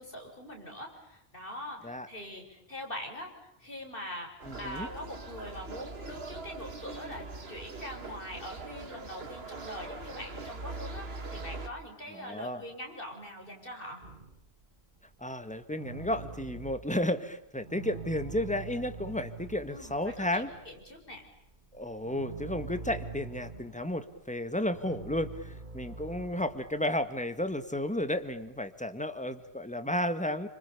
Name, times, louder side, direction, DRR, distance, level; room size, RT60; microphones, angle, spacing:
voice 1, 0.0-3.3 3.6-4.3 4.6-14.0 19.7-21.3, left 1 dB, 55° left, 2 dB, 7.2 m, -43 dB
voice 2, 4.4-4.9 12.1-12.6 15.2-20.5 21.7-30.5, left 1 dB, 5° left, 10 dB, 1.9 m, -33 dB
sound 1, 4.4-11.7, right 3 dB, 65° right, 2.1 m, -42 dB
sound 2, 14.0-17.2 17.6-28.6, right 4 dB, 45° right, 2.2 m, -45 dB
29.5 x 26.5 x 7.1 m, 0.80 s
omnidirectional pair, 1.1 m